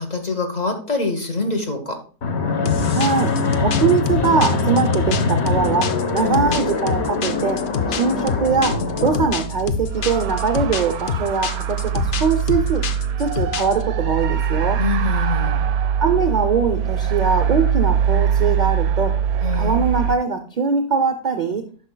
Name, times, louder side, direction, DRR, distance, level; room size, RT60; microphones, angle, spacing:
voice 1, 0.0-1.9 6.2-6.6 14.8-15.7 19.4-19.8, left 3 dB, 35° left, 3 dB, 0.9 m, -25 dB
Fixed-wing aircraft airplane, 2.2-9.3, left 3 dB, 50° left, 1.2 m, -22 dB
sound 1, 2.7-13.8, left 7 dB, 70° left, 0.5 m, -27 dB
voice 2, 2.9-3.3 3.6-7.6 7.9-12.9 13.2-14.8 16.0-19.1 19.5-21.6, right 5 dB, 50° right, 6 dB, 0.5 m, -21 dB
sound 2, 6.2-20.2, right 8 dB, 85° right, 1.1 m, -23 dB
9.8 x 6.1 x 2.2 m, 0.40 s
omnidirectional pair, 1.5 m